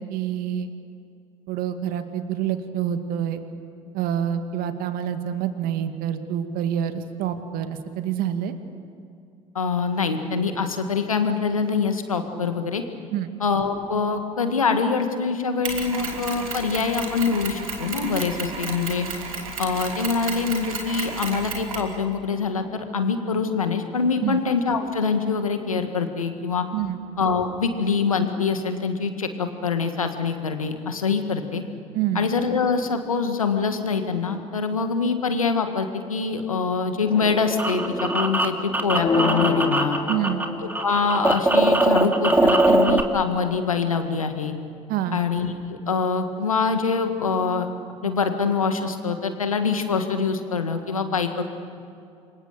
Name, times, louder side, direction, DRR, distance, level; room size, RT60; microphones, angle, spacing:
voice 1, 0.1-0.7 1.5-3.4 3.9-8.5 13.1-13.3 24.2-24.4 26.7-27.0 31.9-32.3 40.1-40.4 44.9-45.2, right 10 dB, 60° right, 8 dB, 2.0 m, -27 dB
voice 2, 9.6-12.8 13.4-19.1 19.6-26.7 27.2-31.6 32.2-40.0 40.8-44.6 45.1-47.7 48.0-51.4, left 5 dB, 90° left, 7 dB, 1.7 m, -24 dB
Mechanisms, 15.6-21.9, right 4 dB, 85° right, 2.9 m, -32 dB
sound 1, 37.1-40.4 40.7-43.0, right 2 dB, 10° right, 2.6 m, -21 dB
sound 2, 38.9-41.0, left 5 dB, 25° left, 2.0 m, -25 dB
28.0 x 24.5 x 6.7 m, 2.5 s
figure-of-eight pair, 60°, 17 cm